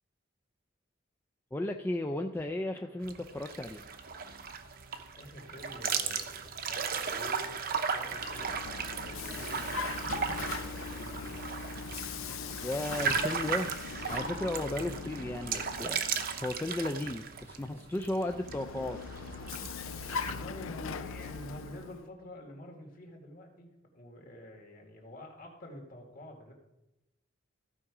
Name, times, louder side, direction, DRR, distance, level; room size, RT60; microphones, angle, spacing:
voice 1, 1.5-3.8 12.6-13.7 14.1-19.0, left 1 dB, 10° left, 3 dB, 0.3 m, -35 dB
sound 1, 2.3-21.5, right 2 dB, 85° right, 0.9 m, -58 dB
sound 2, 3.0-20.3, right 6 dB, 45° right, 0.7 m, -36 dB
voice 2, 5.1-7.6 7.9-11.4 20.3-26.5, left 1 dB, 45° left, 1 dB, 1.9 m, -48 dB
Vehicle, 8.0-16.5 18.2-22.1, left 5 dB, 85° left, 0.5 m, -40 dB
14.5 x 4.9 x 4.8 m, 0.94 s
head